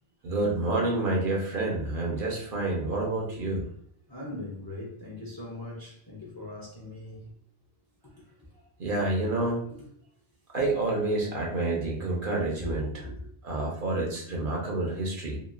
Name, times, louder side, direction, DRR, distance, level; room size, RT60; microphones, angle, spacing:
voice 1, 0.2-3.6 8.8-9.7 10.5-13.1 13.4-15.4, right 2 dB, 55° right, 0.7 m, -28 dB
voice 2, 4.1-7.3 12.6-13.2, left 1 dB, 30° left, 0.4 m, -40 dB
2.9 x 2.4 x 2.4 m
omnidirectional pair, 1.2 m